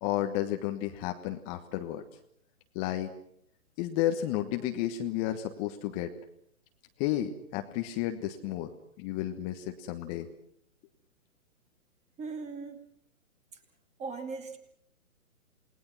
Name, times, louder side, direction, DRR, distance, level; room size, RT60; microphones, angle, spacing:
voice 1, 0.0-2.0 2.7-3.1 3.8-6.1 7.0-8.7 9.0-10.3, left 12 dB, 25° left, 6 dB, 1.3 m, -32 dB
voice 2, 12.2-12.8 13.5-13.6 14.0-14.6, right 4 dB, 15° right, 7 dB, 2.6 m, -38 dB
28.5 x 19.5 x 6.0 m, 0.69 s
figure-of-eight pair, 130°, 42 cm